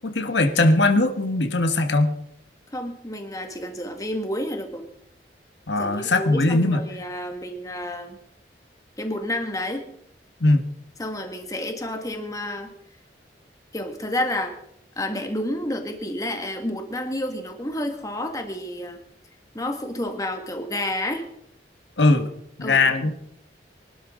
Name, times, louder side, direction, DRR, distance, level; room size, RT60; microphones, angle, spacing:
voice 1, 0.1-2.2 5.7-6.8 10.4-10.6 22.0-22.3 22.6-23.1, left 2 dB, 80° left, 7 dB, 1.5 m, -20 dB
voice 2, 2.7-4.8 5.8-8.2 9.0-9.9 11.0-12.7 13.7-14.6 15.0-19.0 19.5-21.3 22.6-23.1, left 1 dB, 20° left, 5 dB, 1.9 m, -30 dB
23.5 x 12.0 x 3.9 m, 0.73 s
head